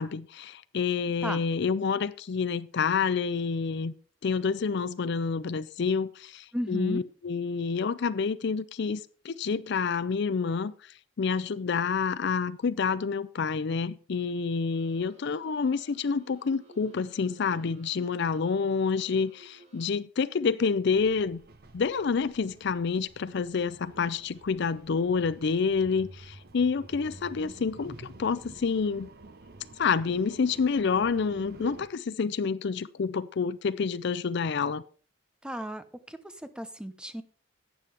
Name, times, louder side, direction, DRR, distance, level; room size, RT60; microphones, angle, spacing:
voice 1, 0.0-3.9 4.2-10.7 11.2-21.4 21.7-29.1 29.8-34.8, left 5 dB, 60° left, 0.5 m, -28 dB
voice 2, 6.5-7.0 35.4-36.2 36.6-37.2, equal, 5° right, 0.8 m, -34 dB
sound 1, 14.7-19.9, right 2 dB, 35° right, 4.0 m, -57 dB
sound 2, 20.9-31.9, right 3 dB, 55° right, 1.0 m, -49 dB
12.0 x 9.1 x 3.4 m
head